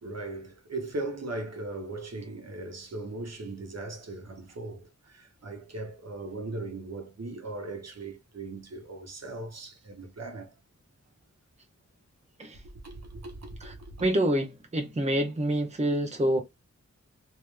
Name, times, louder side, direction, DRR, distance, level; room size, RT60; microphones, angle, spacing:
voice 1, 0.0-10.5 12.8-13.9, right 2 dB, 60° right, 1.3 m, -38 dB
voice 2, 14.0-16.4, right 1 dB, 25° right, 0.8 m, -27 dB
3.2 x 2.9 x 3.4 m
wide cardioid pair, 95°, 29 cm